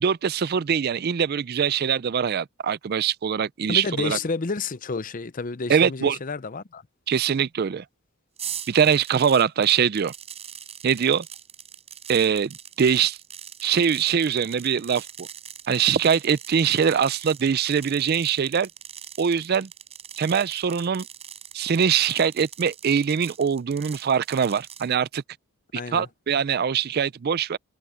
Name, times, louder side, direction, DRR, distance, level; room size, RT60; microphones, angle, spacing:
voice 1, 0.0-4.2 5.7-6.2 7.1-7.8 8.7-10.1 10.8-11.3 12.1-13.2 13.6-15.3 15.7-18.7 19.2-19.7 20.2-21.1 21.5-25.2 25.9-27.6, right 7 dB, 45° right, 0.4 m, -23 dB
voice 2, 3.7-6.8 25.7-26.1, left 4 dB, 40° left, 0.6 m, -30 dB
sound 1, 8.4-24.9, right 9 dB, 30° right, 7.5 m, -42 dB
head